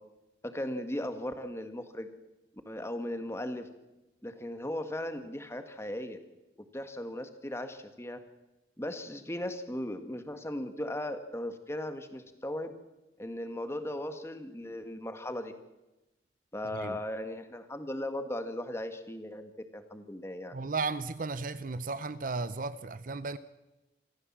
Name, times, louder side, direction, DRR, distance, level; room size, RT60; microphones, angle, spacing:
voice 1, 0.4-2.1 2.6-3.7 4.2-6.2 6.7-8.2 8.8-12.7 13.2-15.5 16.5-20.5, left 1 dB, 15° left, 1.6 m, -37 dB
voice 2, 20.5-23.4, right 3 dB, 50° right, 0.7 m, -35 dB
26.0 x 14.5 x 7.4 m
head